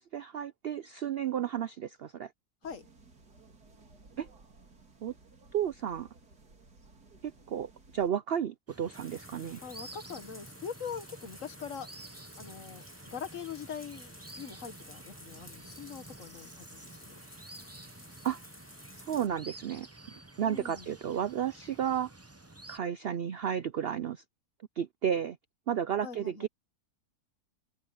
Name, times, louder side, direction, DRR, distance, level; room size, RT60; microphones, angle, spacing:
voice 1, 0.0-2.3 4.2-4.3 5.0-5.1 5.5-6.1 7.2-9.6 18.2-18.4 18.9-19.9 20.4-22.1 22.7-24.2 24.8-25.4 25.7-26.5, right 9 dB, 65° right, 0.6 m, -32 dB
sound 1, 2.6-8.1, right 3 dB, 85° right, 3.7 m, -58 dB
sound 2, 8.7-22.8, right 2 dB, 15° right, 0.7 m, -51 dB
sound 3, 8.9-19.3, left 1 dB, 10° left, 2.7 m, -53 dB
voice 2, 9.6-11.9 12.4-12.8 13.1-17.2 20.4-20.9 26.0-26.5, left 6 dB, 55° left, 1.9 m, -42 dB
open air
omnidirectional pair, 1.6 m